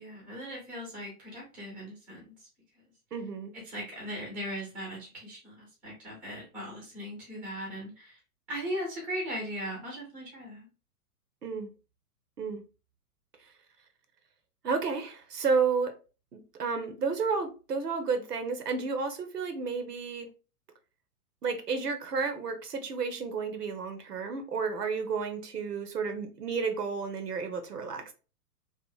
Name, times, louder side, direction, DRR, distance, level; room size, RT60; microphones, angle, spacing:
voice 1, 0.0-2.3 3.6-8.2 8.5-10.7, equal, 5° right, 0.4 m, -38 dB
voice 2, 3.1-3.5 11.4-11.7 12.4-12.6 14.6-15.9 16.3-20.3 21.4-28.1, right 5 dB, 85° right, 0.8 m, -31 dB
2.7 x 2.5 x 2.3 m
figure-of-eight pair, 115°, 46 cm